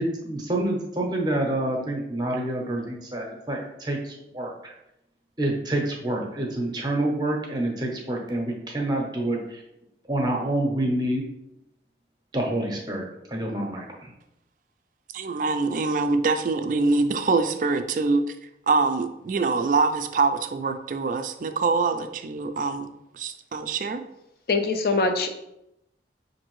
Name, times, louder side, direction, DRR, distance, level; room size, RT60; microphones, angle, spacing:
voice 1, 0.0-4.7 5.4-9.6 10.1-11.2 12.3-14.1, right 1 dB, 25° right, 1 dB, 0.7 m, -27 dB
voice 2, 15.1-18.2 18.7-22.9 23.1-24.0, right 4 dB, 45° right, 8 dB, 0.3 m, -24 dB
voice 3, 24.5-25.3, left 3 dB, 55° left, 6 dB, 0.5 m, -23 dB
5.9 x 2.6 x 3.0 m, 0.86 s
head